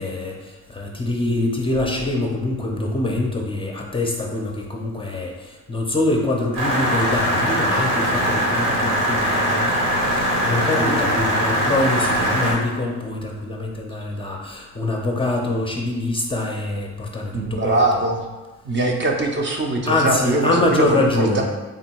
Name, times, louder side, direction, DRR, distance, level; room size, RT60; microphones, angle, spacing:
voice 1, 0.0-17.8 19.9-21.4, left 2 dB, 20° left, 0 dB, 0.5 m, -24 dB
sound 1, 6.5-12.5, equal, 85° right, 1.3 m, -21 dB
voice 2, 17.3-18.3 18.6-21.4, right 2 dB, 40° right, 1 dB, 0.6 m, -22 dB
3.6 x 2.2 x 4.4 m, 1.2 s
cardioid pair, 90°, 30 cm